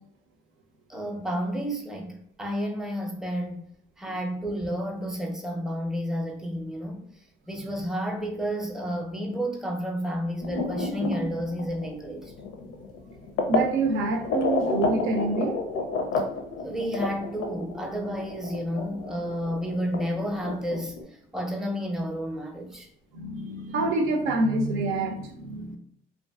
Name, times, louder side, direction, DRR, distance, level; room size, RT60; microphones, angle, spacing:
voice 1, 0.9-3.6 4.0-7.0 7.5-12.3 16.6-22.9, equal, 5° right, 0.5 m, -31 dB
sound 1, 10.4-13.7 14.2-21.0, left 3 dB, 70° left, 0.5 m, -31 dB
voice 2, 13.5-15.6 23.1-25.8, right 2 dB, 85° right, 0.5 m, -26 dB
2.6 x 2.4 x 2.3 m
cardioid pair, 90°, 20 cm